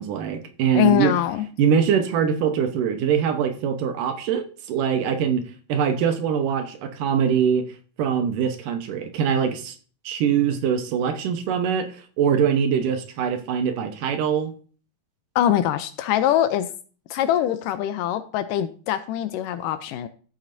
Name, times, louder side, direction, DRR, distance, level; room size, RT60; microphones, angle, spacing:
voice 1, 0.0-1.1 1.6-5.4 5.7-7.6 8.0-9.7 10.1-11.9 12.2-14.5, right 7 dB, 70° right, 6 dB, 2.5 m, -23 dB
voice 2, 0.8-1.5 15.4-16.7 17.1-20.1, left 11 dB, 80° left, 11 dB, 2.1 m, -23 dB
14.0 x 7.4 x 2.6 m, 0.40 s
omnidirectional pair, 4.1 m